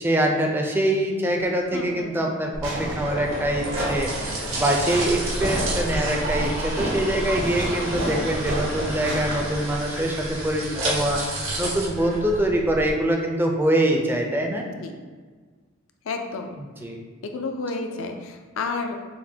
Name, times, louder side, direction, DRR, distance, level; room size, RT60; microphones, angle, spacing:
voice 1, 0.0-14.7 16.6-17.0, right 1 dB, 10° right, 1 dB, 0.4 m, -24 dB
voice 2, 1.7-2.3 14.6-14.9 16.1-16.5 17.2-19.0, left 3 dB, 70° left, 4 dB, 0.4 m, -31 dB
sound 1, 2.5-12.9, right 1 dB, 90° right, 1.0 m, -30 dB
Fireworks, 2.6-10.0, right 1 dB, 65° right, 0.9 m, -31 dB
5.9 x 2.1 x 2.7 m, 1.5 s
head